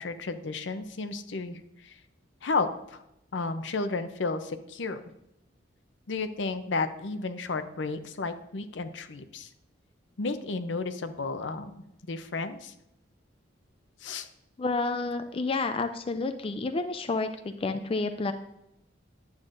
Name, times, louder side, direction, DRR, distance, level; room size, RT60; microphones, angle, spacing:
voice 1, 0.0-2.0 2.4-3.0 3.3-5.0 6.1-9.5 10.2-12.7 14.0-14.3, left 3 dB, 70° left, 10 dB, 0.6 m, -33 dB
voice 2, 14.6-18.3, left 3 dB, 30° left, 8 dB, 0.4 m, -30 dB
9.6 x 7.9 x 2.6 m, 0.85 s
head